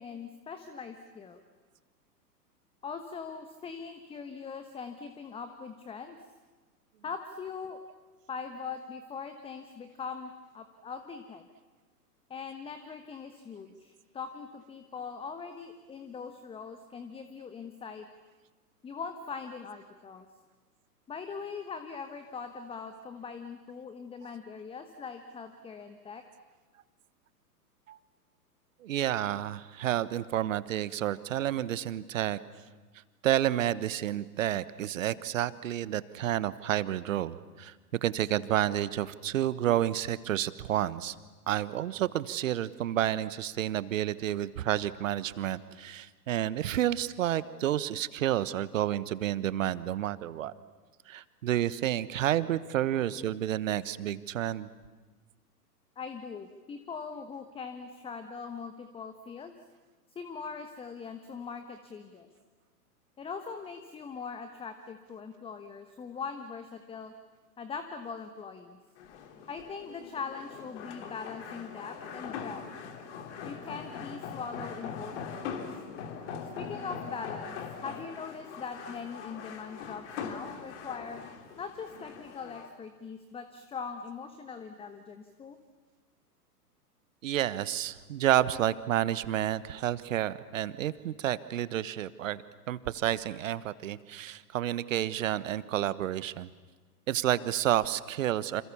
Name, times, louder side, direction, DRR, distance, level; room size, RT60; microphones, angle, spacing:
voice 1, 0.0-1.4 2.8-6.2 7.0-7.8 8.3-11.4 12.3-18.1 18.8-20.3 21.1-26.2 56.0-59.5 60.1-62.3 63.2-67.1 67.6-68.8 69.5-72.6 73.4-75.6 76.6-81.2 81.6-85.6, left 5 dB, 10° left, 8 dB, 1.2 m, -41 dB
voice 2, 28.8-32.4 33.2-37.7 38.0-41.1 41.5-50.5 51.1-54.7 87.2-96.5 97.1-98.6, right 12 dB, 55° right, 16 dB, 1.3 m, -30 dB
sound 1, 69.0-82.7, left 6 dB, 45° left, 3.1 m, -42 dB
29.0 x 27.5 x 7.2 m, 1.3 s
figure-of-eight pair, 115°, 48 cm